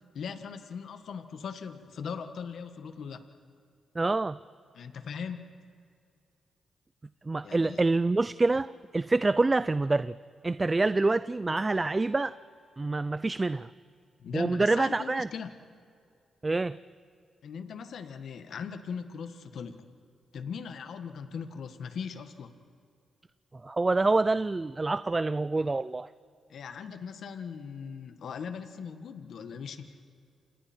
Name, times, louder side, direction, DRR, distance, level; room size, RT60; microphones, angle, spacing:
voice 1, 0.1-3.2 4.7-5.5 7.4-7.8 14.2-15.5 17.4-19.8 20.3-22.5 26.5-29.9, left 6 dB, 70° left, 9 dB, 1.5 m, -39 dB
voice 2, 4.0-4.4 7.3-10.1 10.4-12.3 12.8-13.7 14.3-15.3 16.4-16.8 23.6-26.1, right 3 dB, 25° right, 15 dB, 0.4 m, -26 dB
sound 1, 11.6-13.7, left 1 dB, 15° left, 3.5 m, -56 dB
29.0 x 27.5 x 4.5 m, 2.3 s
cardioid pair, 75°, 0 cm